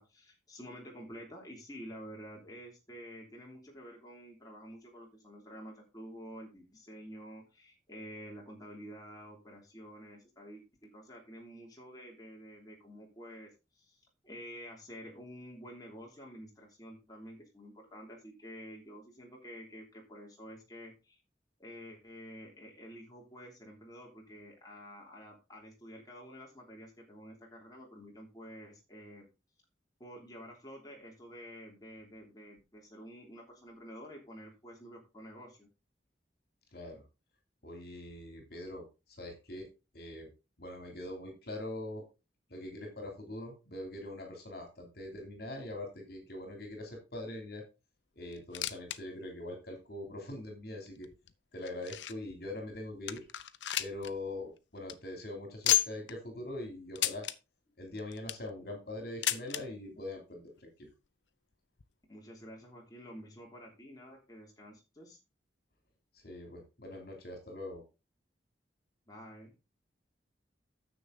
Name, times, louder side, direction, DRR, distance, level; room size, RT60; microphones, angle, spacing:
voice 1, 0.0-21.2 21.6-29.2 30.0-35.7 62.1-65.2 69.1-69.5, equal, 20° left, -1 dB, 3.1 m, -49 dB
voice 2, 36.7-37.0 37.6-39.7 39.9-40.3 40.6-42.0 42.5-47.6 48.1-51.1 51.5-53.3 53.8-57.3 57.8-60.9 66.1-67.8, left 1 dB, 55° left, 3 dB, 3.1 m, -43 dB
sound 1, 48.3-49.0 49.3-49.4 50.0-50.1 50.9-52.3 52.7-52.8 53.1-54.1 54.4-54.5 54.8-54.9 55.6-56.1 56.9-57.4 58.0-58.5 59.2-59.6 60.6-60.7 60.9-61.0 61.8-61.9, left 13 dB, 80° left, 0.7 m, -32 dB
9.8 x 7.1 x 4.0 m, 0.28 s
head